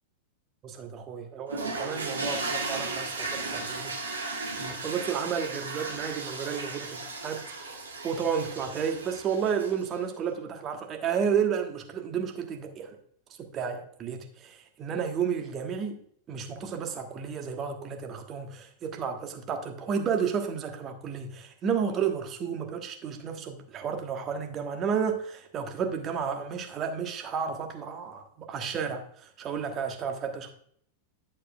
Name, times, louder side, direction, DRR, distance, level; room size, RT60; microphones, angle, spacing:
voice 1, 0.6-3.9 4.6-7.5 8.0-12.9 13.5-16.0 16.3-30.5, right 7 dB, 30° right, 4 dB, 1.4 m, -32 dB
sound 1, 1.5-10.0, right 3 dB, 75° right, 1.6 m, -35 dB
11.0 x 7.4 x 2.4 m, 0.64 s
figure-of-eight pair, 90°, 0 cm